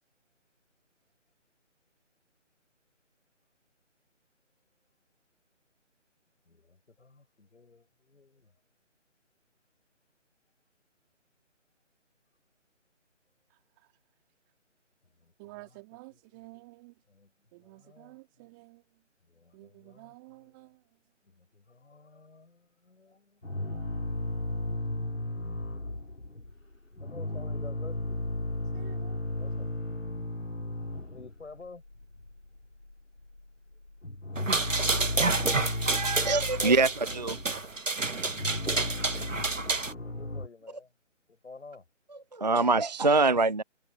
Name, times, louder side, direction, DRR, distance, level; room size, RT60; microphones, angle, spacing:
voice 1, 6.5-8.5 15.2-15.7 17.1-17.3 17.6-18.2 19.3-20.1 21.3-23.4 27.0-28.2 29.3-29.7 31.0-31.8 38.5-38.9 40.0-40.9 41.3-41.8, left 4 dB, 70° left, 6.2 m, -51 dB
voice 2, 13.5-13.9 15.4-17.0 17.5-19.0 19.5-21.0 26.6-26.7 28.5-29.6, right 25 dB, 15° right, 3.6 m, -52 dB
sound 1, 23.4-26.6 26.9-31.6 31.8-32.9 33.2-33.4 33.7-37.7 38.1-40.5, left 1 dB, 90° left, 4.3 m, -35 dB
sound 2, 34.4-39.9, right 3 dB, 80° right, 2.0 m, -29 dB
voice 3, 35.4-37.4 42.3-43.6, right 3 dB, 35° right, 0.4 m, -25 dB
figure-of-eight pair, 155°, 37 cm